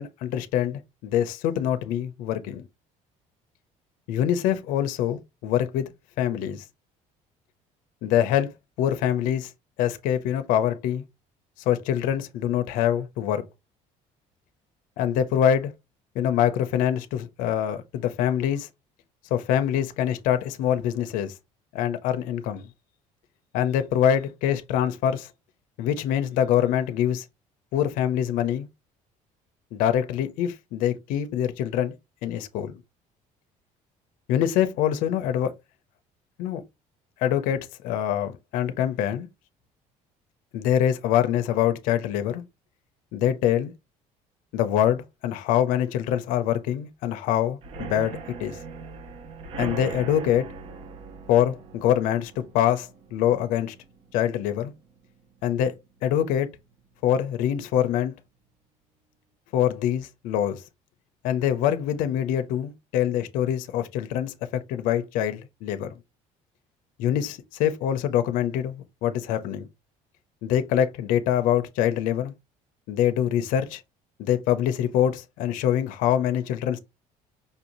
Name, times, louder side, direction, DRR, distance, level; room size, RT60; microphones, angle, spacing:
voice 1, 0.0-2.6 4.1-5.9 6.2-6.6 8.0-9.5 9.8-11.0 11.7-13.4 15.0-15.7 16.1-18.7 19.3-21.3 21.7-22.7 23.5-25.3 25.8-27.2 27.7-28.7 29.7-31.9 32.2-32.8 34.3-35.5 36.4-36.6 37.2-39.3 40.5-42.4 43.1-43.7 44.5-48.6 49.6-50.5 51.3-53.7 54.1-54.7 55.4-55.7 56.0-56.5 57.0-58.1 59.5-60.6 61.2-66.0 67.0-69.7 70.4-72.3 72.9-73.8 74.2-76.8, left 10 dB, 70° left, 0.6 m, -24 dB
sound 1, 47.6-55.2 55.6-56.0 56.2-56.3 56.7-56.8, right 5 dB, 40° right, 0.6 m, -40 dB
5.3 x 2.6 x 2.9 m
cardioid pair, 180°, 14 cm